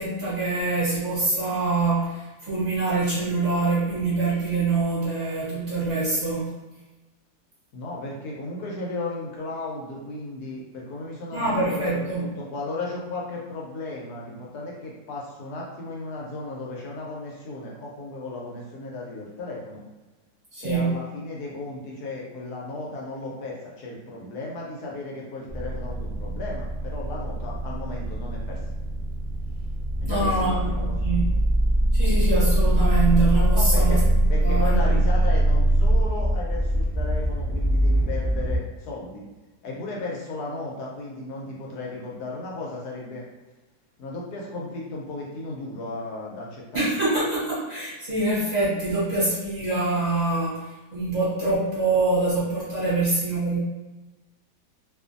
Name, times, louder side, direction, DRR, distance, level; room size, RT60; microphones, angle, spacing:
voice 1, 0.0-6.5 11.3-12.2 20.5-21.0 30.1-31.2 31.9-34.0 34.4-35.0 46.7-53.6, right 3 dB, 30° right, -9 dB, 0.9 m, -25 dB
voice 2, 7.7-19.8 20.6-28.6 30.0-31.0 33.5-34.0 34.3-39.2 39.6-43.2 44.0-46.9, left 2 dB, 75° left, -3 dB, 1.1 m, -35 dB
sound 1, 25.5-38.6, right 1 dB, 15° left, 0.6 m, -22 dB
2.5 x 2.5 x 2.5 m, 1.1 s
omnidirectional pair, 1.8 m